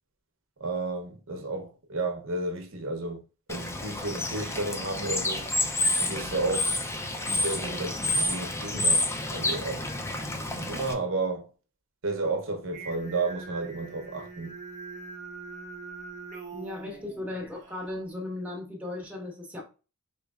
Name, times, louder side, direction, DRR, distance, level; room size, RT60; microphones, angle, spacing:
voice 1, 0.6-3.2 3.5-5.5 6.0-6.7 7.2-9.1 9.3-9.8 10.5-11.5 12.0-14.6, right 3 dB, 65° right, 0.7 m, -32 dB
Bird / Water, 3.5-10.9, left 2 dB, 10° left, 0.3 m, -29 dB
Singing, 12.7-17.8, right 4 dB, 35° right, 0.9 m, -43 dB
voice 2, 16.5-19.6, left 2 dB, 5° right, 1.0 m, -36 dB
3.8 x 3.2 x 2.3 m
head